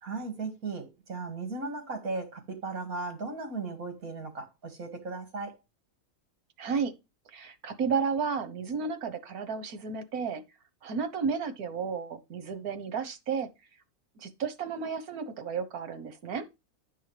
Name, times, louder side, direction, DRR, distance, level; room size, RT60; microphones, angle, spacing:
voice 1, 0.0-5.6, right 3 dB, 70° right, 2.5 m, -36 dB
voice 2, 6.6-6.9 7.3-10.4 10.8-13.5 14.2-16.4, right 5 dB, 90° right, 1.6 m, -32 dB
10.5 x 5.6 x 3.3 m
omnidirectional pair, 1.5 m